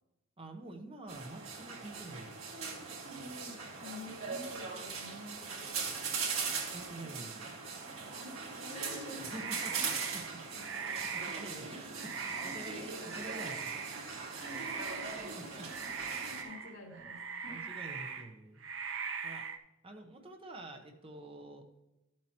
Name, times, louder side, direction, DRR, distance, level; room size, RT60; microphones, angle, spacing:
voice 1, 0.4-2.4 6.7-7.4 9.2-10.4 10.9-13.8 15.4-15.7 17.5-18.6 19.2-19.5 19.8-21.6, right 1 dB, 25° right, 4 dB, 0.9 m, -47 dB
sound 1, 1.1-16.4, right 5 dB, 85° right, 2.3 m, -40 dB
voice 2, 3.1-6.2 8.6-9.5 9.9-10.1 10.4-11.8 12.4-12.8 14.4-15.9 16.4-17.7, left 2 dB, 70° left, -2 dB, 2.3 m, -51 dB
sound 2, 9.2-11.6 12.0-14.0 14.3-15.4 15.6-18.3 18.6-19.6, right 6 dB, 65° right, 0.7 m, -41 dB
13.0 x 7.4 x 3.0 m, 0.98 s
head